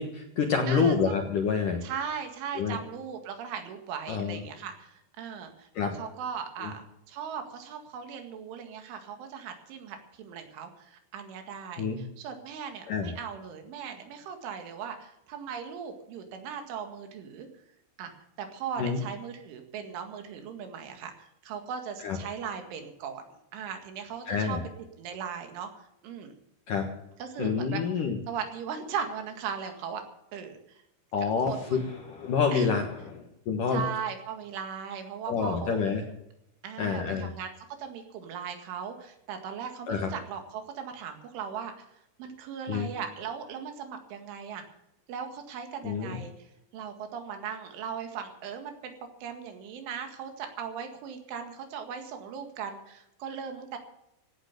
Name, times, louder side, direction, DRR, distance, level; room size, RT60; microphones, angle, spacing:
voice 1, 0.0-1.8 2.5-2.8 4.1-4.4 5.8-5.9 6.6-6.7 11.8-12.0 12.9-13.1 18.8-19.0 22.0-22.2 24.3-24.6 26.7-26.9 27.4-28.2 31.1-33.2 33.5-33.8 35.3-36.0 36.8-37.3 39.9-40.1 42.7-42.9 45.8-46.2, left 5 dB, 65° left, 3 dB, 2.3 m, -28 dB
voice 2, 0.7-1.1 1.8-17.5 18.0-18.1 18.4-23.2 23.5-24.6 25.0-25.7 26.0-26.3 27.2-27.8 28.3-30.0 30.3-30.8 31.5-31.9 32.5-32.8 33.7-35.8 36.6-37.5 37.8-41.9 42.2-44.6 45.1-48.9 49.2-53.8, right 7 dB, 75° right, 6 dB, 4.4 m, -38 dB
17.0 x 10.5 x 6.8 m, 0.82 s
omnidirectional pair, 5.7 m